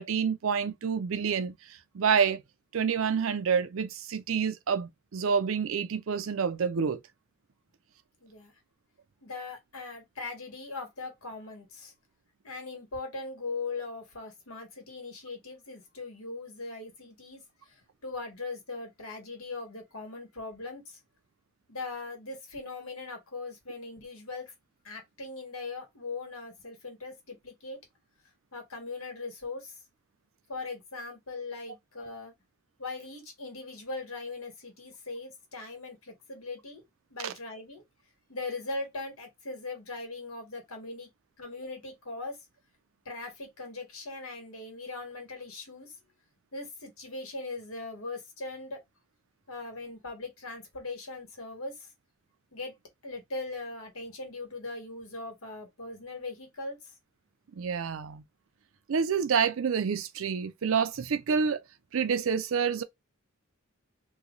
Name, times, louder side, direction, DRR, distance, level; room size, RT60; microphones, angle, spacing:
voice 1, 0.0-2.4 2.7-7.0 37.2-37.3 57.5-58.2 58.9-61.6 61.9-62.8, right 6 dB, 70° right, 0.4 m, -28 dB
voice 2, 8.2-8.5 9.2-11.9 12.4-17.4 18.0-21.0 21.7-24.5 24.8-27.8 28.5-29.7 30.5-32.3 32.8-36.8 37.1-37.8 38.3-41.1 41.4-42.4 43.0-45.9 46.5-48.8 49.5-51.9 52.5-52.7 53.0-56.9, left 3 dB, 85° left, 1.5 m, -40 dB
3.0 x 2.3 x 3.8 m
head